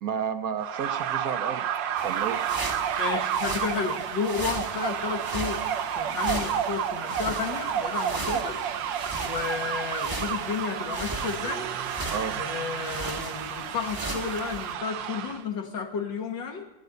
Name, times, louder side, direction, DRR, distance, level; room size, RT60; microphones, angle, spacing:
voice 1, 0.0-1.7 2.0-2.4 12.1-12.4, right 7 dB, 65° right, 9 dB, 1.0 m, -31 dB
sound 1, 0.6-15.4, right 9 dB, 80° right, 1.5 m, -31 dB
sound 2, 2.0-14.7, right 1 dB, 15° right, 0.8 m, -38 dB
voice 2, 3.0-5.6 6.0-8.6 9.2-11.7 12.4-16.7, left 5 dB, 80° left, 1 dB, 1.9 m, -32 dB
14.5 x 9.7 x 8.1 m, 1.1 s
omnidirectional pair, 2.0 m